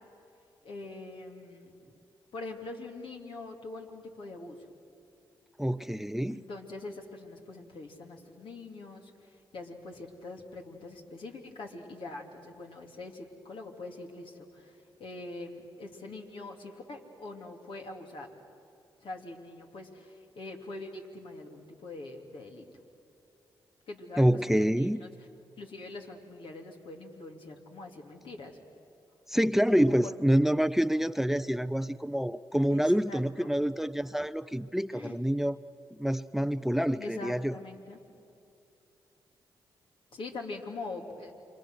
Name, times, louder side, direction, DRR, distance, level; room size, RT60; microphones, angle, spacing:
voice 1, 0.6-1.7 2.3-4.6 6.3-18.3 19.0-22.6 23.9-25.1 25.6-28.6 29.9-30.0 32.7-33.5 34.9-35.2 36.9-38.0 40.1-41.3, left 2 dB, 70° left, 2 dB, 2.9 m, -43 dB
voice 2, 5.6-6.4 24.2-25.0 29.3-35.6 35.9-37.5, equal, 5° right, 16 dB, 0.5 m, -27 dB
29.0 x 25.0 x 6.5 m, 2.7 s
supercardioid pair, 50°, 9 cm